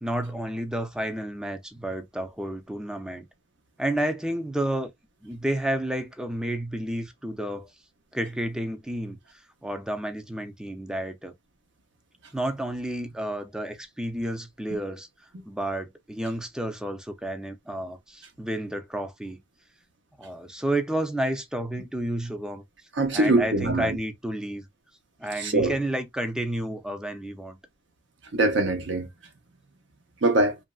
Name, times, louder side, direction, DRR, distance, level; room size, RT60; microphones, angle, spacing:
voice 1, 0.0-3.3 3.8-4.9 5.2-7.7 8.1-9.2 9.6-11.3 12.3-15.1 15.5-19.4 20.2-22.6 23.1-24.7 25.2-27.6, right 1 dB, 5° right, 0.5 m, -31 dB
voice 2, 23.0-23.9 25.4-25.7 28.3-29.1 30.2-30.5, right 2 dB, 70° right, 0.8 m, -22 dB
3.0 x 2.5 x 2.3 m
head